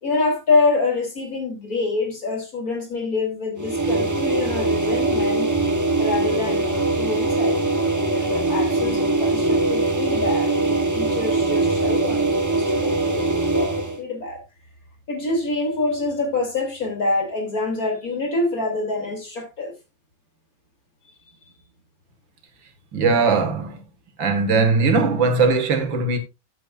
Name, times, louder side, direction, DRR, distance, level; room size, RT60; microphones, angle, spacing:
voice 1, 0.0-5.5 6.0-14.4 15.1-19.7, left 3 dB, 45° left, 3.5 m, -26 dB
sound 1, 3.6-14.0, right 2 dB, 15° right, 0.6 m, -22 dB
voice 2, 22.9-23.8 24.2-26.2, right 4 dB, 75° right, 2.4 m, -19 dB
13.5 x 8.6 x 2.5 m
omnidirectional pair, 2.1 m